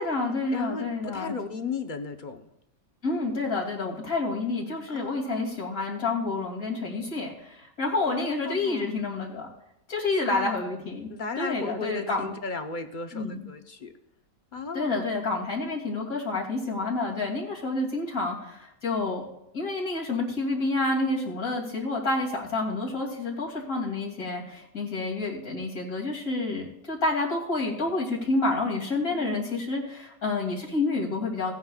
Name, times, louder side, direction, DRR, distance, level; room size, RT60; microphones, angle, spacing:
voice 1, 0.0-1.3 3.0-9.5 9.9-11.1 11.4-12.3 13.1-13.4 14.7-19.3 19.5-31.5, left 3 dB, 75° left, -2 dB, 3.3 m, -29 dB
voice 2, 0.5-2.5 4.9-5.6 8.1-9.0 10.2-10.6 11.1-13.9 14.5-15.1 29.1-29.7, left 4 dB, 40° left, 6 dB, 0.9 m, -36 dB
17.5 x 9.6 x 2.4 m, 0.80 s
omnidirectional pair, 1.5 m